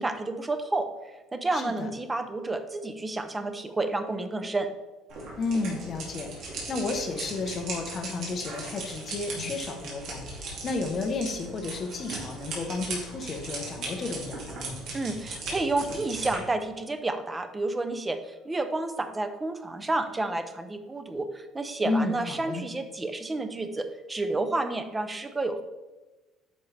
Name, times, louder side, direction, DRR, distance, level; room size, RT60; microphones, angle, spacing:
voice 1, 0.0-4.7 14.9-25.6, right 2 dB, 10° right, 8 dB, 0.5 m, -30 dB
voice 2, 1.5-1.9 5.4-14.8 21.8-22.6, left 3 dB, 30° left, 3 dB, 0.9 m, -32 dB
sound 1, 5.1-16.4, right 3 dB, 50° right, 2.3 m, -38 dB
9.4 x 5.4 x 3.3 m, 1.1 s
cardioid pair, 170°, 0 cm